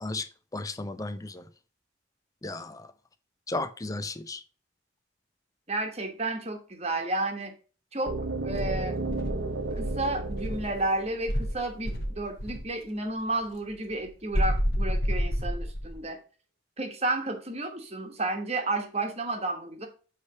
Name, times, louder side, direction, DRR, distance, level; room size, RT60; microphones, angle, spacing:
voice 1, 0.5-1.4 2.4-2.9 3.5-4.4, left 2 dB, 15° left, 0.4 m, -34 dB
voice 2, 5.7-7.5 7.9-8.1 8.4-9.0 9.8-16.2 16.8-19.9, right 2 dB, 30° right, 1.2 m, -31 dB
sound 1, 8.1-12.0, right 2 dB, 75° right, 1.0 m, -33 dB
Insect, 8.5-10.8 11.3-12.7 14.3-16.0, equal, 50° left, 1.3 m, -29 dB
8.4 x 3.3 x 5.3 m
head